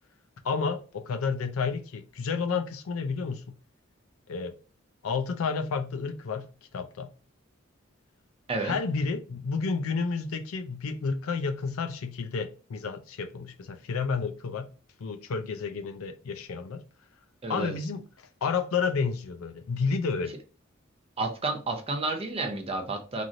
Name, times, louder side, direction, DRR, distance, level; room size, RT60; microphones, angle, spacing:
voice 1, 0.4-3.6 4.3-4.5 5.0-6.5 6.7-7.1 8.6-14.7 15.0-16.8 17.5-20.3, left 5 dB, 90° left, 0.4 m, -31 dB
voice 2, 17.4-17.8 21.2-23.2, right 3 dB, 30° right, 0.5 m, -31 dB
3.0 x 2.5 x 2.5 m
head